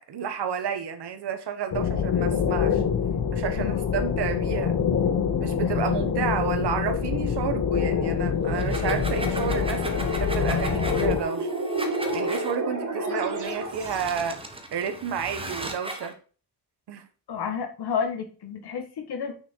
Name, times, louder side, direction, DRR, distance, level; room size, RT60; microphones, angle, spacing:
voice 1, 0.1-2.8 3.3-4.8 5.4-11.5 12.1-14.4 14.7-16.1 16.9-17.0, right 7 dB, 85° right, 8 dB, 1.4 m, -31 dB
sound 1, 1.7-11.2, left 7 dB, 55° left, 0.9 m, -25 dB
voice 2, 3.5-3.9 5.6-5.7 17.3-19.3, left 6 dB, 75° left, 4 dB, 1.9 m, -31 dB
sound 2, 8.4-14.2, right 2 dB, 50° right, 2.0 m, -32 dB
sound 3, 8.5-12.6 13.4-16.1, right 2 dB, 15° right, 1.2 m, -37 dB
6.3 x 6.1 x 4.6 m, 0.38 s
wide cardioid pair, 170°, 40 cm